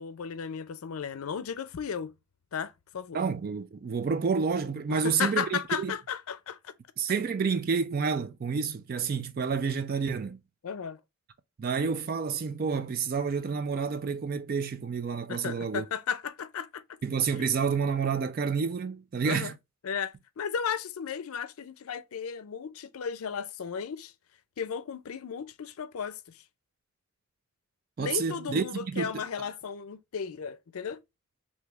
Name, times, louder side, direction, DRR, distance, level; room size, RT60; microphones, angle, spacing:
voice 1, 0.0-2.1 2.5-3.2 4.9-6.7 10.6-11.0 15.3-16.8 17.4-17.5 19.2-19.5 19.8-24.1 24.6-26.4 28.0-31.0, left 7 dB, 85° left, 0.5 m, -35 dB
voice 2, 3.1-5.9 7.0-10.4 11.6-15.8 17.0-19.5 28.0-29.2, right 5 dB, 45° right, 0.3 m, -29 dB
3.4 x 2.7 x 3.0 m
head